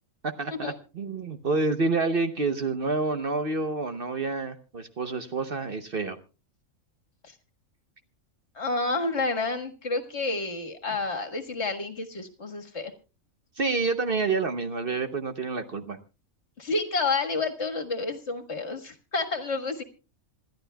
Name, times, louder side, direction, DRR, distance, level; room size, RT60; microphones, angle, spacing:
voice 1, 0.2-6.2 13.6-16.0, right 3 dB, 45° right, 9 dB, 1.0 m, -28 dB
voice 2, 8.6-12.9 16.6-19.8, left 3 dB, 55° left, 5 dB, 1.9 m, -29 dB
27.0 x 12.0 x 2.3 m, 0.32 s
omnidirectional pair, 1.4 m